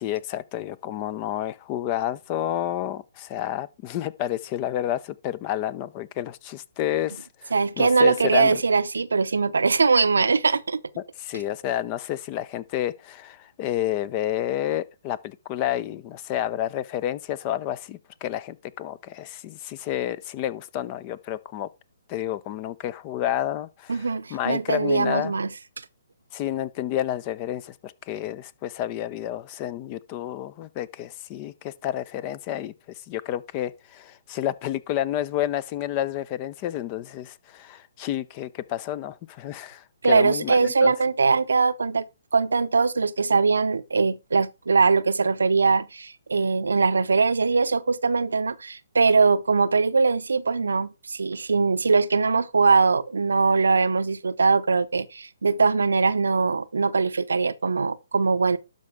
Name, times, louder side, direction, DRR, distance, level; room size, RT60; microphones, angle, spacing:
voice 1, 0.0-8.6 11.2-21.7 22.1-25.3 26.3-32.7 33.1-40.9, left 12 dB, 30° left, 0.6 m, -30 dB
voice 2, 7.5-10.8 23.9-25.5 40.0-42.0 42.3-58.6, right 4 dB, 75° right, 0.6 m, -21 dB
11.5 x 5.3 x 3.5 m
figure-of-eight pair, 135°, 0 cm